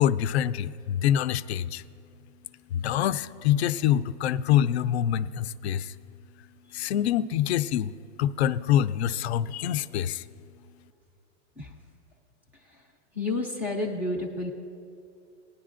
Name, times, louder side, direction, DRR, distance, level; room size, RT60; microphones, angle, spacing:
voice 1, 0.0-1.8 2.7-5.9 6.7-7.9 8.2-10.2, left 10 dB, 60° left, 14 dB, 0.5 m, -25 dB
voice 2, 13.1-14.5, left 2 dB, 5° right, 1 dB, 0.4 m, -30 dB
20.0 x 10.0 x 2.5 m, 2.5 s
supercardioid pair, 155°, 37 cm